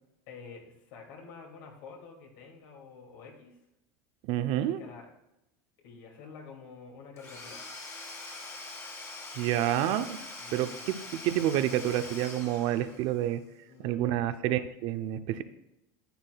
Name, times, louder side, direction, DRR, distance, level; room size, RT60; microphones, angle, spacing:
voice 1, 0.3-3.5 4.8-5.1 5.8-7.6 10.4-11.0 13.6-14.2, left 5 dB, 70° left, 1 dB, 2.4 m, -49 dB
voice 2, 4.3-4.8 9.3-10.2 10.5-13.4 13.8-15.4, right 12 dB, 60° right, 11 dB, 0.6 m, -29 dB
Domestic sounds home sounds / Tools, 7.2-13.3, left 2 dB, 25° left, 1.7 m, -43 dB
10.0 x 8.0 x 2.3 m, 0.88 s
supercardioid pair, 115°, 10 cm